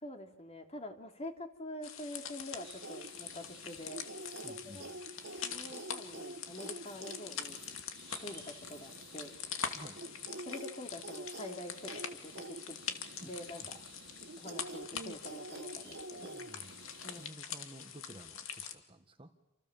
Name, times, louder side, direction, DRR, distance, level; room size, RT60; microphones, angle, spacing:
voice 1, 0.0-4.0 4.6-4.9 5.4-7.6 8.2-9.3 10.4-12.8 13.2-13.6 14.4-16.3 17.0-17.3, left 1 dB, 30° left, 4 dB, 2.9 m, -46 dB
sound 1, 1.8-18.7, left 7 dB, 65° left, 2.5 m, -44 dB
sound 2, 2.6-17.3, right 2 dB, 50° right, 1.1 m, -48 dB
voice 2, 4.4-5.0 9.7-10.0 13.2-13.3 16.2-16.8 17.2-19.3, right 1 dB, 25° right, 7 dB, 1.6 m, -53 dB
29.0 x 27.5 x 7.4 m, 0.86 s
head